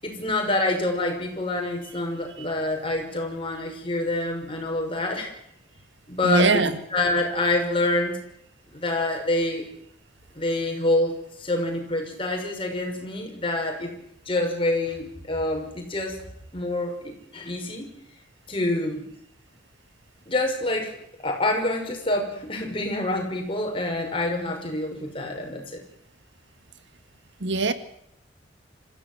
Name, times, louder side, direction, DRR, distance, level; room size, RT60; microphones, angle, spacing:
voice 1, 0.0-5.3 6.1-6.6 6.9-8.2 8.7-9.6 10.3-13.9 14.3-16.2 16.5-17.9 18.5-19.1 20.3-20.9 21.2-25.8, left 2 dB, 25° left, 6.0 m, -26 dB
voice 2, 6.2-6.8 27.4-27.7, right 3 dB, 70° right, 1.9 m, -22 dB
27.0 x 15.5 x 7.7 m
head